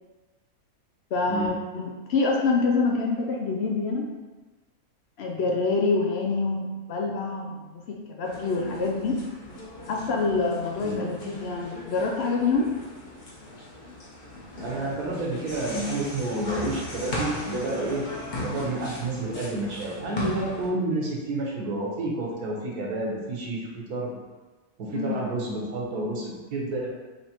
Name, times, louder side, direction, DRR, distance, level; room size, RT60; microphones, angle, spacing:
voice 1, 1.1-4.1 5.2-9.2 9.9-12.7 24.9-25.2, left 3 dB, 80° left, 1 dB, 0.5 m, -26 dB
sound 1, 8.2-20.7, left 1 dB, 40° left, 0.8 m, -37 dB
voice 2, 14.6-18.0 18.4-24.2 24.8-26.9, right 2 dB, 70° right, -2 dB, 1.4 m, -30 dB
5.6 x 3.1 x 2.9 m, 1.2 s
omnidirectional pair, 1.7 m